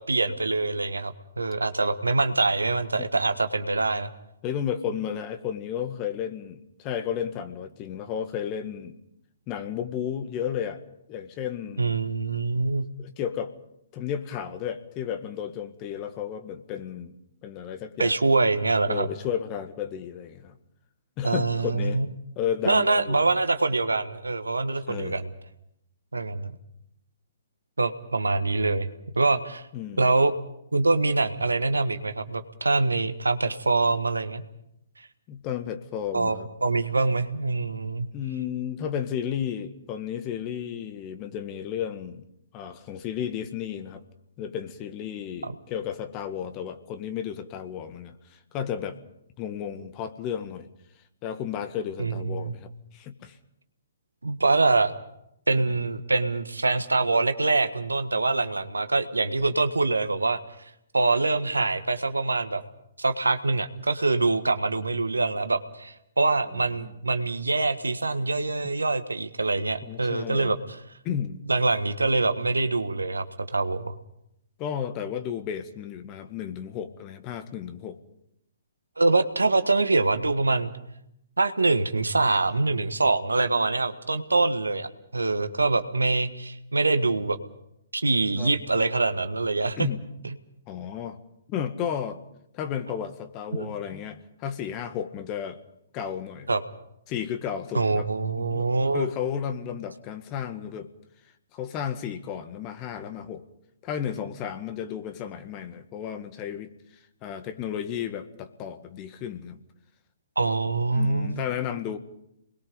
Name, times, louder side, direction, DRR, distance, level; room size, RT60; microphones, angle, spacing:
voice 1, 0.0-4.1 11.8-12.8 18.0-19.0 21.2-22.1 22.6-25.3 26.1-26.6 27.8-28.9 29.1-29.6 30.0-30.3 30.7-34.4 36.1-38.1 45.4-45.5 52.0-52.5 54.2-54.9 55.5-60.4 60.9-62.6 63.0-70.8 71.5-73.9 79.0-80.7 81.4-87.4 87.9-89.9 90.2-90.4 93.5-93.7 96.5-96.6 97.7-99.0 110.3-111.4, right 3 dB, 85° right, 9 dB, 1.6 m, -24 dB
voice 2, 4.4-9.0 9.5-10.8 11.1-11.9 13.0-13.5 13.9-17.1 17.4-18.2 18.9-20.6 21.2-22.0 22.4-23.2 24.9-25.2 29.7-30.1 35.3-36.5 38.1-42.2 42.5-44.0 44.4-49.0 49.4-50.7 51.2-53.4 55.6-55.7 66.5-66.9 68.6-68.7 69.8-70.6 71.0-71.4 74.6-78.0 88.4-88.5 89.8-90.0 90.7-91.2 91.5-92.2 92.5-95.6 95.9-96.5 97.1-98.1 98.4-98.7 98.9-100.9 101.5-103.4 103.8-106.7 107.2-109.6 110.9-112.0, left 9 dB, 30° left, 8 dB, 1.8 m, -33 dB
28.0 x 21.0 x 5.4 m, 0.78 s
figure-of-eight pair, 130°, 0 cm